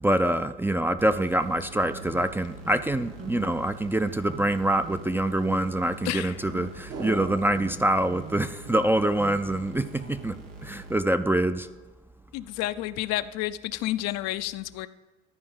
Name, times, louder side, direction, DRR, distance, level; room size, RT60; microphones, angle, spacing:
voice 1, 0.0-10.3 10.6-11.7, right 1 dB, 10° right, 10 dB, 0.4 m, -25 dB
sound 1, 1.0-11.0, right 2 dB, 85° right, 0.9 m, -45 dB
sound 2, 1.8-2.9 3.2-3.6 4.0-4.6 4.8-5.0 5.4-5.8 6.2-10.6, right 5 dB, 45° right, 1.6 m, -43 dB
voice 2, 6.0-6.4 12.3-14.9, left 15 dB, 60° left, 12 dB, 0.5 m, -30 dB
sound 3, 6.9-9.4 9.7-9.8, right 5 dB, 60° right, 1.4 m, -41 dB
12.5 x 4.7 x 5.4 m, 1.3 s
hypercardioid pair, 65°, 29 cm